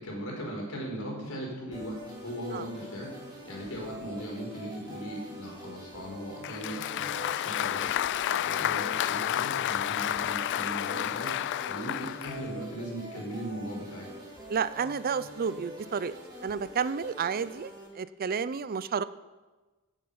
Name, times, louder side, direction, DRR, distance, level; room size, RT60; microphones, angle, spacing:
voice 1, 0.0-3.1 3.4-7.9 8.4-14.1, equal, 85° left, -1 dB, 4.6 m, -38 dB
sound 1, 1.7-17.9, equal, 20° right, 3.8 m, -45 dB
Applause, 6.4-12.4, left 11 dB, 55° left, 0.3 m, -30 dB
voice 2, 14.5-16.1 16.4-19.0, right 6 dB, 45° right, 16 dB, 0.4 m, -31 dB
16.5 x 7.8 x 5.6 m, 1.2 s
head